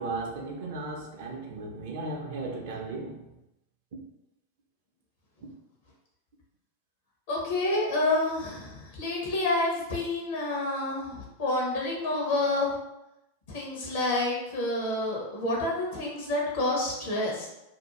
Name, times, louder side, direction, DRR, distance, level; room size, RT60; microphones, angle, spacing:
voice 1, 0.0-3.2, right 3 dB, 55° right, 0 dB, 0.5 m, -35 dB
voice 2, 7.3-12.7 13.5-17.5, left 2 dB, 55° left, -3 dB, 0.7 m, -28 dB
2.5 x 2.2 x 2.9 m, 0.90 s
figure-of-eight pair, 90°, 0 cm